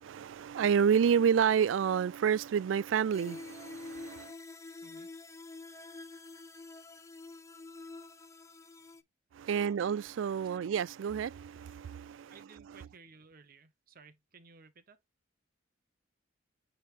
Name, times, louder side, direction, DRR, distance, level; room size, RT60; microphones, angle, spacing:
voice 1, 0.0-4.3 9.3-12.4 12.7-12.9, right 7 dB, 70° right, 0.3 m, -29 dB
sound 1, 3.1-9.0, left 3 dB, 15° left, 0.4 m, -47 dB
voice 2, 9.4-10.0 10.3-10.8 12.3-15.0, right 4 dB, 50° right, 0.9 m, -56 dB
8.8 x 3.4 x 3.2 m
head